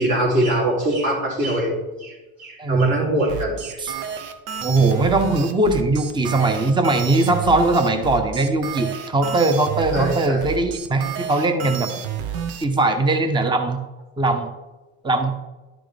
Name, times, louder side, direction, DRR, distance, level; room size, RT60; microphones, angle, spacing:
voice 1, 0.0-3.8 9.9-10.4, right 1 dB, 45° right, -7 dB, 3.0 m, -23 dB
voice 2, 2.6-2.9 3.8-3.9 4.6-11.9 12.6-13.8 14.2-14.5 15.0-15.3, right 2 dB, 15° right, 6 dB, 0.8 m, -20 dB
sound 1, 3.3-12.6, right 8 dB, 80° right, 1.1 m, -30 dB
11.0 x 6.3 x 3.3 m, 1.1 s
cardioid pair, 115°, 36 cm